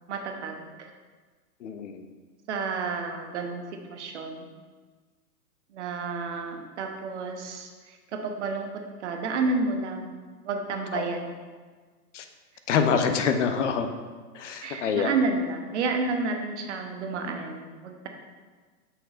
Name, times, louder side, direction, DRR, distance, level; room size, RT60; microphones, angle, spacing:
voice 1, 0.1-0.9 2.5-4.5 5.7-10.2 10.4-11.3 14.6-18.1, right 3 dB, 45° right, 4 dB, 0.9 m, -31 dB
voice 2, 1.6-2.0 10.9-11.0 12.1-12.2 12.7-13.9 14.3-15.2, left 6 dB, 50° left, 7 dB, 0.6 m, -26 dB
7.8 x 6.2 x 2.4 m, 1.4 s
hypercardioid pair, 145°, 49 cm